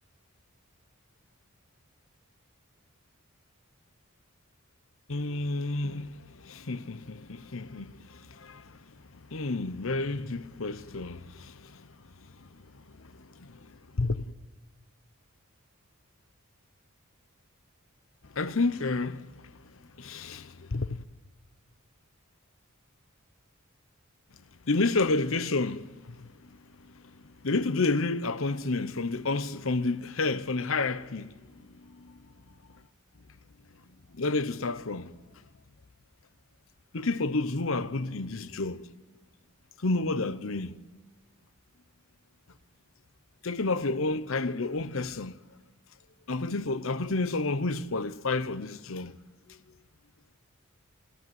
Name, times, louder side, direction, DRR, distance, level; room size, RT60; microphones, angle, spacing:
voice 1, 5.1-8.8 9.3-11.8 13.2-13.6 14.0-14.3 18.3-19.5 20.0-21.0 24.7-26.3 27.4-32.1 34.2-35.1 36.9-38.9 39.8-40.8 43.4-45.4 46.3-49.2, left 3 dB, 65° left, 0.9 m, -30 dB
28.0 x 17.0 x 9.5 m
head